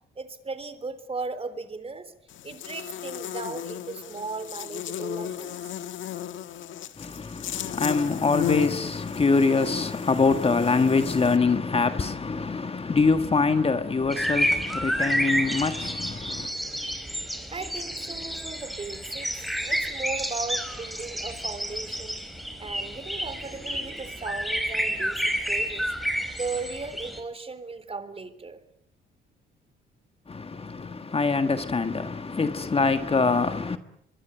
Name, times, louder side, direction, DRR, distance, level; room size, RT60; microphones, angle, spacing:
voice 1, 0.2-2.1 2.4-5.7 17.5-19.3 19.6-22.2 22.6-28.6, right 4 dB, 30° right, 3.6 m, -37 dB
Buzz, 2.3-11.4, left 10 dB, 75° left, 1.6 m, -35 dB
voice 2, 7.0-16.5 30.3-33.8, left 4 dB, 30° left, 1.7 m, -24 dB
sound 1, 14.1-27.2, equal, ahead, 5.3 m, -30 dB
24.0 x 23.0 x 9.1 m
cardioid pair, 90°, 20 cm